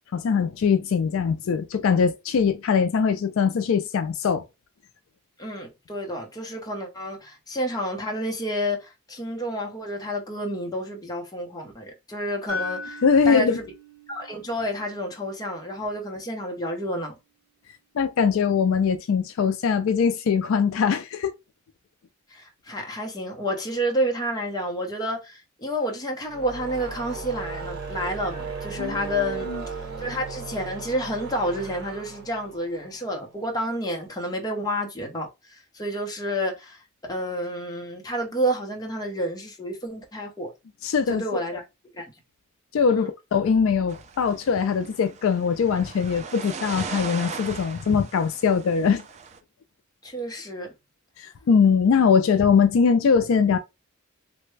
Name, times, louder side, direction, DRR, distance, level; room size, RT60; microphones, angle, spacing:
voice 1, 0.1-4.4 13.0-13.6 18.0-21.3 28.8-29.0 29.5-29.6 40.8-41.4 42.7-49.0 51.2-53.6, left 6 dB, 65° left, 0.3 m, -21 dB
voice 2, 5.4-13.6 14.1-17.1 22.3-29.5 29.8-36.8 37.1-40.5 41.1-41.6 41.9-42.1 42.9-43.1 50.0-50.7, equal, 15° left, 0.8 m, -30 dB
sound 1, 12.5-16.5, left 3 dB, 80° right, 0.9 m, -39 dB
sound 2, 26.2-33.6, right 5 dB, 50° right, 1.1 m, -36 dB
sound 3, 43.9-49.4, right 5 dB, 30° right, 0.3 m, -38 dB
3.3 x 2.1 x 3.1 m
head